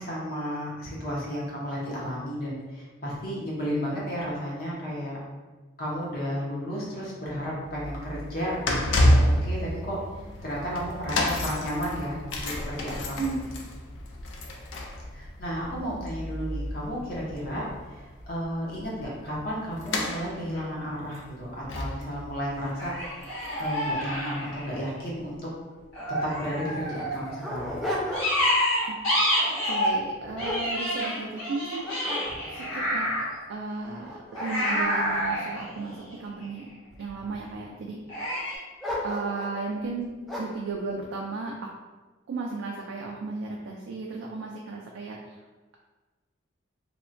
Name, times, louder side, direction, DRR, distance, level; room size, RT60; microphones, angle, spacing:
voice 1, 0.0-5.2 5.8-10.0 10.4-13.5 15.1-17.6 17.9-22.9 23.6-25.5 26.2-27.8, equal, 45° left, -5 dB, 0.7 m, -33 dB
sound 1, 7.6-23.9 24.2-24.4 25.2-25.3, left 1 dB, 70° left, 0.4 m, -30 dB
sound 2, 20.5-20.6 22.8-25.0 25.9-27.4 28.1-30.0 30.4-33.3 34.4-36.6 38.1-38.6, equal, 90° left, 1.1 m, -28 dB
Dog, 26.2-26.3 26.9-28.6 29.0-29.3 29.9-31.4 31.8-32.7 33.3-33.4 33.9-36.2 36.9-37.5 38.8-39.6 40.3-40.7, left 1 dB, ahead, 0.3 m, -35 dB
voice 2, 29.6-31.9 32.5-33.1 33.5-36.7 37.0-38.6 39.0-40.1 40.4-41.5 42.3-45.4, right 3 dB, 80° right, -1 dB, 0.3 m, -35 dB
2.8 x 2.1 x 2.5 m, 1.2 s
head